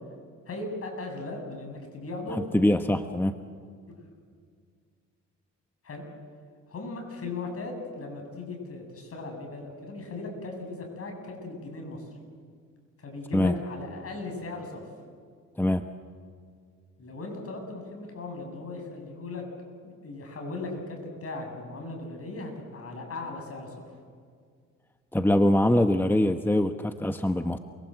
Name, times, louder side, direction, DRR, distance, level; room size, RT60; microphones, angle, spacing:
voice 1, 0.5-2.4 5.8-6.0 6.7-12.1 13.0-14.9 17.0-19.4 19.8-23.9, left 3 dB, 50° left, 2 dB, 7.8 m, -38 dB
voice 2, 2.3-3.4 13.3-13.5 15.6-15.8 25.1-27.6, left 1 dB, 5° left, 8 dB, 1.0 m, -23 dB
28.5 x 22.5 x 7.9 m, 2.1 s
cardioid pair, 90°, 30 cm